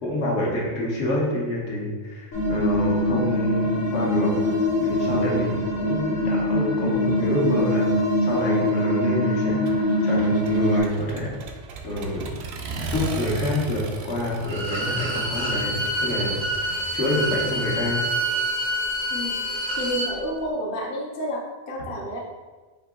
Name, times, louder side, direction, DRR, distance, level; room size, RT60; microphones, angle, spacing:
voice 1, 0.0-4.3 4.8-7.9 8.2-11.3 11.8-12.3 12.7-18.0, left 1 dB, 70° left, -4 dB, 1.3 m, -27 dB
sound 1, 2.3-10.8, left 1 dB, 90° left, 1.5 m, -23 dB
Accelerating revving vroom, 9.7-17.9, right 4 dB, 65° right, 0.8 m, -36 dB
Bowed string instrument, 14.4-20.1, right 1 dB, 40° right, 0.4 m, -27 dB
voice 2, 19.1-19.4 19.8-22.2, equal, 55° left, -2 dB, 0.8 m, -30 dB
4.5 x 2.8 x 3.6 m, 1.3 s
omnidirectional pair, 1.3 m